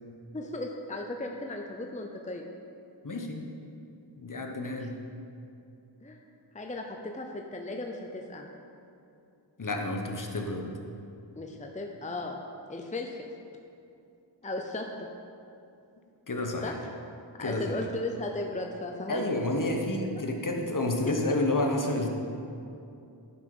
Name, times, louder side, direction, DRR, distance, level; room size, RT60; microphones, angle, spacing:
voice 1, 0.3-2.5 4.6-4.9 6.0-6.2 6.5-8.5 11.4-12.4 12.7-13.3 14.4-15.1 16.6-16.8 17.4-19.3 21.1-21.2, left 2 dB, 15° left, 2 dB, 0.7 m, -36 dB
voice 2, 3.0-3.4 4.2-4.9 9.6-10.7 16.3-16.7 17.4-17.8 19.1-22.1, left 2 dB, 45° left, 2 dB, 1.2 m, -30 dB
11.0 x 5.8 x 5.4 m, 2.6 s
wide cardioid pair, 50°, 44 cm